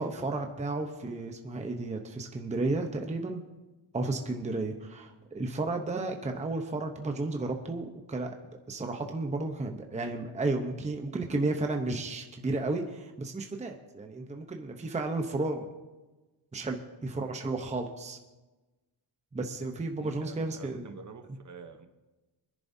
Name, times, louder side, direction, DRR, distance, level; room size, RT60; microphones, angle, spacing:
voice 1, 0.0-3.4 3.9-8.4 8.7-15.7 16.5-18.2 19.3-20.9, right 2 dB, 15° right, 4 dB, 0.8 m, -33 dB
voice 2, 20.0-21.9, right 5 dB, 40° right, 7 dB, 1.0 m, -47 dB
24.5 x 10.5 x 2.7 m, 1.2 s
wide cardioid pair, 160°, 47 cm